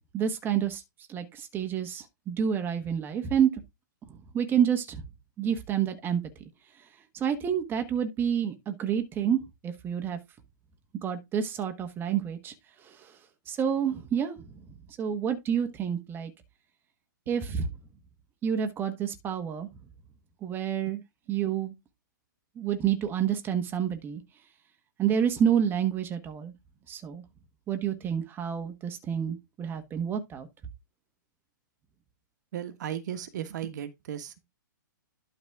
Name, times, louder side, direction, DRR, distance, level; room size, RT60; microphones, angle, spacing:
voice 1, 0.1-0.8 1.1-3.5 4.1-5.0 5.4-6.2 7.1-10.2 11.0-12.5 12.8-13.2 13.5-14.6 15.0-16.3 17.3-17.7 18.4-19.7 20.4-21.0 21.3-21.7 22.6-24.2 25.0-26.5 26.9-27.2 27.7-30.5, right 8 dB, 20° right, 1.3 m, -28 dB
voice 2, 32.5-34.3, right 10 dB, 60° right, 1.4 m, -35 dB
12.0 x 4.1 x 3.5 m
hypercardioid pair, 130°, 11 cm